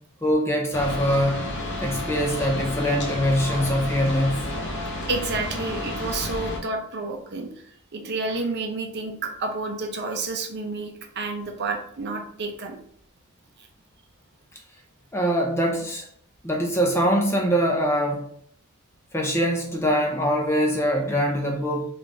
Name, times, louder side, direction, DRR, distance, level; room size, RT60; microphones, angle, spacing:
voice 1, 0.2-1.4 1.8-4.3 15.1-16.0 16.4-18.2 19.1-21.9, equal, 10° left, 0 dB, 0.6 m, -23 dB
sound 1, 0.7-6.6, left 1 dB, 55° left, 0.8 m, -31 dB
voice 2, 5.1-7.5 7.9-10.9 11.2-12.8, right 3 dB, 55° right, 3 dB, 0.6 m, -30 dB
3.8 x 2.5 x 3.3 m, 0.64 s
head